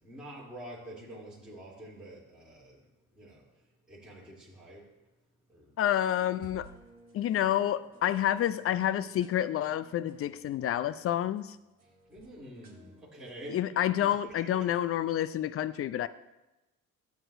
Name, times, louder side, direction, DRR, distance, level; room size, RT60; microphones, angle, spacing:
voice 1, 0.0-2.9 3.1-3.4 3.9-4.9 5.5-5.8 12.1-13.6 14.0-14.7, right 1 dB, ahead, -9 dB, 3.1 m, -47 dB
voice 2, 5.8-6.7 7.1-11.6 13.5-16.1, left 11 dB, 35° left, 16 dB, 0.4 m, -29 dB
sound 1, 6.1-13.0, right 2 dB, 20° right, 3.5 m, -58 dB
13.0 x 8.2 x 2.6 m, 1.0 s
hypercardioid pair, 60°, 42 cm